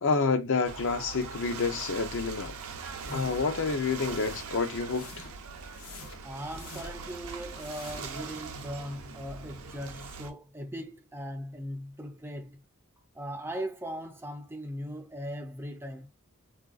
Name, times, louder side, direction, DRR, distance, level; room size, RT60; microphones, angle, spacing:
voice 1, 0.0-2.5 3.1-5.3, left 4 dB, 60° left, 0.6 m, -29 dB
Ocean / Boat Water vehicle, 0.6-10.3, right 5 dB, 70° right, 0.6 m, -42 dB
sound 1, 2.9-3.5 3.9-4.4 4.9-5.4 5.7-7.1 7.5-8.2, left 1 dB, 80° left, 0.9 m, -46 dB
voice 2, 6.2-12.6 13.1-16.1, equal, 10° right, 0.4 m, -39 dB
3.9 x 2.5 x 2.4 m
head